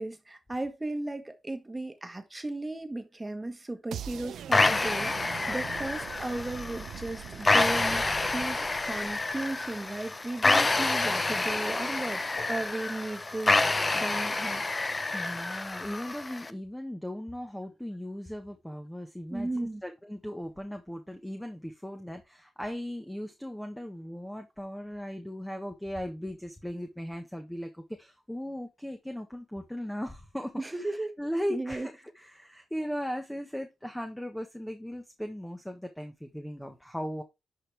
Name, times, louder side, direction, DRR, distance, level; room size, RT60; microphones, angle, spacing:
voice 1, 0.0-13.6 13.9-14.6 19.3-19.8 30.6-31.1 31.5-31.9, right 2 dB, 15° right, 1.5 m, -35 dB
sound 1, 3.9-9.9, right 9 dB, 85° right, 0.6 m, -43 dB
sound 2, 4.5-16.5, left 3 dB, 25° left, 0.7 m, -28 dB
sound 3, 10.6-12.6, left 3 dB, 60° left, 6.3 m, -46 dB
voice 2, 15.1-37.2, equal, 5° left, 1.3 m, -38 dB
11.0 x 5.2 x 3.5 m
cardioid pair, 100°, 0 cm